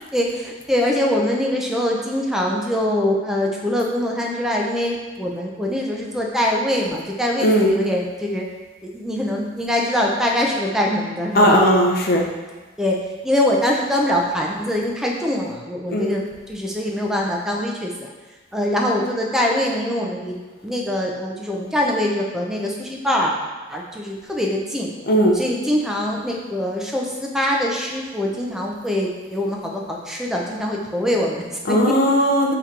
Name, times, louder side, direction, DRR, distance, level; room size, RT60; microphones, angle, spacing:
voice 1, 0.1-8.5 8.8-11.6 12.8-13.0 13.2-16.2 16.5-18.1 18.5-20.4 20.6-23.4 23.7-24.9 25.3-31.9, left 1 dB, 5° right, -1 dB, 0.4 m, -23 dB
voice 2, 7.4-7.7 11.3-12.2 15.9-16.1 25.1-25.4 31.6-32.5, equal, 50° left, 0 dB, 0.6 m, -17 dB
3.7 x 2.9 x 4.5 m, 1.3 s
head